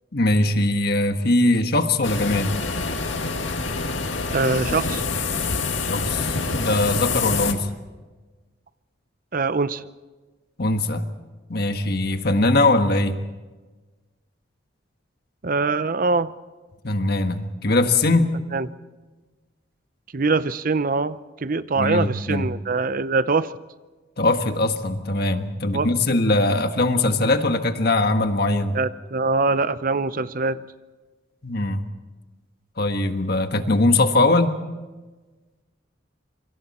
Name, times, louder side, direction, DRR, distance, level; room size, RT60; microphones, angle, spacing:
voice 1, 0.1-2.6 5.9-7.7 10.6-11.1 11.5-13.2 16.8-18.4 21.8-22.5 24.2-28.8 31.4-31.8 32.8-34.6, left 2 dB, 55° left, 7 dB, 1.5 m, -21 dB
sound 1, 2.0-7.5, left 4 dB, 75° left, 2.1 m, -26 dB
voice 2, 4.3-5.0 9.3-9.9 15.4-16.3 18.5-18.7 20.1-23.5 25.7-25.9 28.7-30.6, right 3 dB, 45° right, 15 dB, 0.6 m, -23 dB
27.0 x 25.0 x 4.3 m, 1.3 s
head